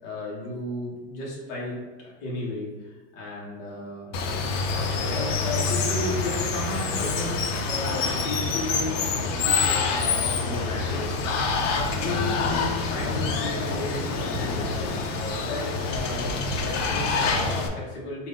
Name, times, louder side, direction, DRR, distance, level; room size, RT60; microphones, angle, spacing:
voice 1, 0.0-4.1 5.1-14.9 15.3-18.3, left 2 dB, 25° left, -5 dB, 0.7 m, -34 dB
Water, 4.1-17.7, left 4 dB, 80° left, 0.7 m, -26 dB
3.6 x 2.2 x 3.9 m, 1.3 s
supercardioid pair, 180°, 37 cm